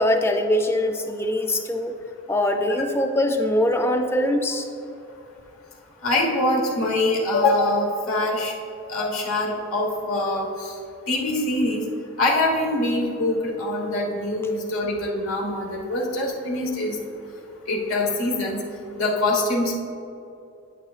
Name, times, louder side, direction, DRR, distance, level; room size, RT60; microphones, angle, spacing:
voice 1, 0.0-2.0 2.3-4.7, left 1 dB, 10° left, 4 dB, 0.5 m, -22 dB
voice 2, 6.0-8.5 8.9-10.7 11.1-11.8 12.2-16.9 17.7-18.6 19.0-19.7, left 2 dB, 85° left, -1 dB, 1.4 m, -24 dB
9.2 x 8.9 x 2.5 m, 2.7 s
head